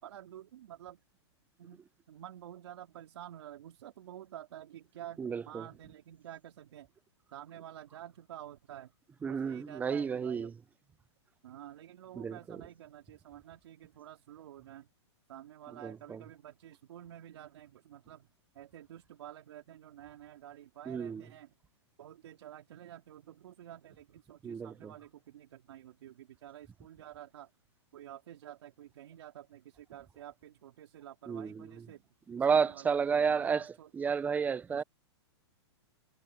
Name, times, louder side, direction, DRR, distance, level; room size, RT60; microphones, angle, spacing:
voice 1, 0.0-1.0 1.6-1.8 2.1-7.0 7.3-8.9 9.3-10.5 11.4-14.9 15.3-18.3 18.5-21.6 22.0-27.5 27.9-32.0 32.4-33.9 34.7-34.8, right 11 dB, 70° right, 4.0 m, -50 dB
voice 2, 5.2-5.7 9.2-10.5 12.2-12.6 15.8-16.2 20.9-21.2 24.4-24.9 31.3-31.7 32.3-34.8, right 6 dB, 10° right, 0.6 m, -32 dB
hypercardioid pair, 140°, 15 cm